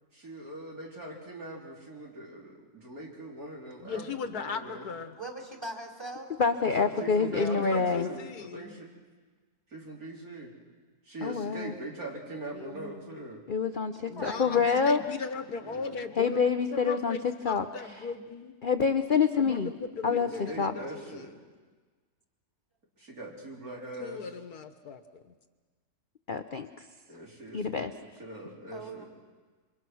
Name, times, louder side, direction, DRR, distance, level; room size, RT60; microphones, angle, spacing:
voice 1, 0.1-4.1 4.3-4.9 6.7-8.9 9.7-10.5 11.0-13.4 15.6-15.9 20.1-21.3 23.0-24.2 27.1-29.1, right 1 dB, 65° right, -2 dB, 4.8 m, -41 dB
voice 2, 3.8-5.1 7.3-8.8 12.5-13.1 14.1-18.5 19.4-21.3 24.0-25.3, left 5 dB, 75° left, 9 dB, 1.8 m, -38 dB
voice 3, 5.2-6.3 14.0-14.9 20.4-20.6 28.7-29.1, right 2 dB, 15° right, 3 dB, 3.4 m, -41 dB
voice 4, 6.4-8.1 11.2-11.7 13.5-15.0 16.2-17.6 18.6-19.7 20.0-20.7 26.3-26.7 27.5-27.9, left 5 dB, 45° left, 8 dB, 0.8 m, -26 dB
27.5 x 25.0 x 6.3 m, 1.4 s
omnidirectional pair, 1.7 m